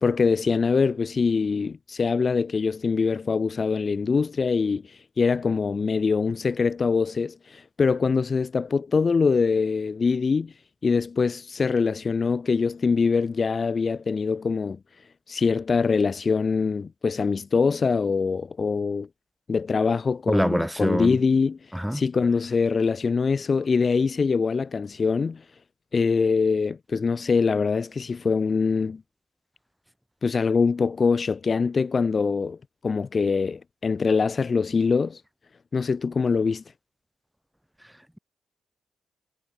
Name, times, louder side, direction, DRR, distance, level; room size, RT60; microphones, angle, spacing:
voice 1, 0.0-10.5 10.8-14.8 15.3-19.1 19.5-21.6 21.9-25.4 25.9-29.0 30.2-32.6 32.8-35.2 35.7-36.6, left 5 dB, 25° left, 1.3 m, -23 dB
voice 2, 20.3-21.2 21.7-22.0, equal, ahead, 1.9 m, -24 dB
wide cardioid pair, 180°, 0 cm